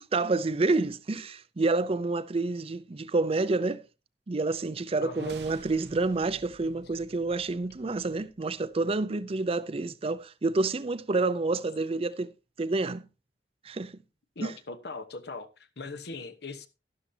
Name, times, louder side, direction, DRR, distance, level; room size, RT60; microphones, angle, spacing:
voice 1, 0.0-3.8 4.3-12.3 12.6-13.1 13.6-13.9 14.4-14.5, right 3 dB, 35° right, 0.5 m, -28 dB
voice 2, 5.0-5.3 14.4-16.7, left 3 dB, 65° left, 1.0 m, -40 dB
sound 1, 5.0-9.0, right 3 dB, 75° right, 1.0 m, -51 dB
12.0 x 11.5 x 2.7 m
head